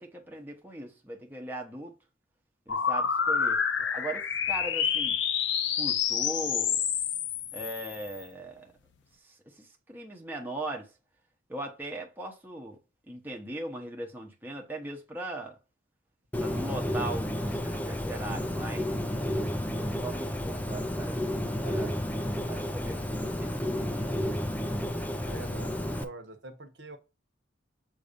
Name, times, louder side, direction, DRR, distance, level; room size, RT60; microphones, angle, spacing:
voice 1, 0.0-1.9 2.7-3.6 3.9-5.2 5.8-6.8 7.5-8.7 9.2-10.9 11.5-12.8 13.1-15.6 16.4-18.9 19.8-21.2 21.6-22.0 22.5-24.1 25.2-25.4, right 1 dB, 10° right, 0.9 m, -39 dB
sound 1, 2.7-8.2, left 7 dB, 65° left, 0.6 m, -28 dB
Bird, 16.3-26.0, left 1 dB, 10° left, 0.5 m, -31 dB
voice 2, 18.3-18.7 25.3-27.0, right 2 dB, 65° right, 1.0 m, -46 dB
7.5 x 2.7 x 5.1 m
head